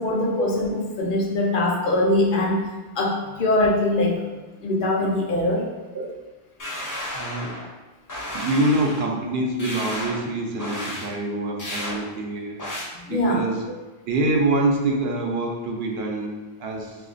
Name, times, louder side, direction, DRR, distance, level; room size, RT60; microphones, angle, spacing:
voice 1, 0.0-2.7 3.0-4.2 4.6-5.6 12.9-13.4, left 1 dB, 65° left, -1 dB, 0.7 m, -22 dB
sound 1, 6.6-7.7 8.1-9.1 9.6-10.2 10.6-11.1 11.6-12.0 12.6-12.8, left 1 dB, 30° left, 0.4 m, -32 dB
voice 2, 7.1-7.6 8.3-12.6 13.1-13.7 14.1-17.0, right 2 dB, 75° right, 0 dB, 0.8 m, -25 dB
2.8 x 2.4 x 4.0 m, 1.2 s
omnidirectional pair, 1.0 m